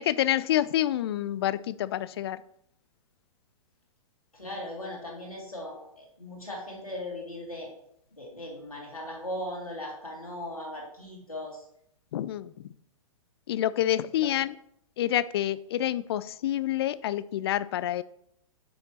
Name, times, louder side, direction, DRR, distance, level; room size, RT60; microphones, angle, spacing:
voice 1, 0.0-2.4 12.1-12.7 13.5-14.5 15.0-18.0, left 12 dB, 45° left, 17 dB, 0.4 m, -28 dB
voice 2, 4.3-7.7 8.2-11.6 14.2-14.3, left 1 dB, 85° left, -2 dB, 2.6 m, -38 dB
8.5 x 6.3 x 2.9 m, 0.73 s
figure-of-eight pair, 110°, 18 cm